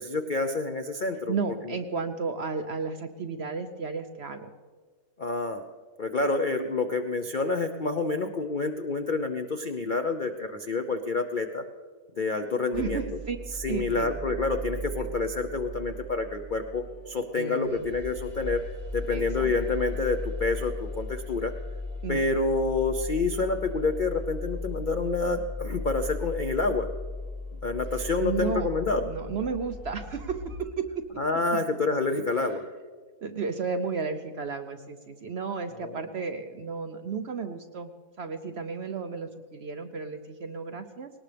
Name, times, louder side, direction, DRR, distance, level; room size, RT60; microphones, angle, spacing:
voice 1, 0.0-1.3 1.6-1.8 5.2-5.6 6.0-11.6 12.2-13.0 13.6-18.6 18.9-21.5 22.1-26.9 27.6-29.1 31.2-32.6 35.8-36.0, left 3 dB, 55° left, 6 dB, 0.5 m, -28 dB
voice 2, 1.3-4.5 12.7-13.4 13.7-14.1 17.4-17.9 19.1-19.5 22.0-22.4 28.2-28.7 29.0-31.0 33.2-37.9 38.2-41.1, right 5 dB, 55° right, 7 dB, 0.8 m, -33 dB
sound 1, 12.7-30.6, left 2 dB, 30° left, 4.1 m, -37 dB
19.5 x 19.0 x 3.4 m, 1.5 s
omnidirectional pair, 1.7 m